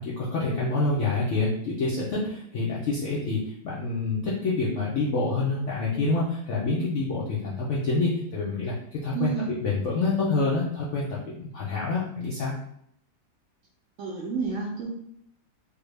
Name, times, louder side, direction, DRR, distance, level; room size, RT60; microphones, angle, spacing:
voice 1, 0.0-12.5, left 3 dB, 75° left, -5 dB, 0.7 m, -27 dB
voice 2, 9.1-9.5 14.0-14.9, right 5 dB, 80° right, -3 dB, 0.7 m, -30 dB
3.4 x 2.1 x 3.2 m, 0.69 s
omnidirectional pair, 1.9 m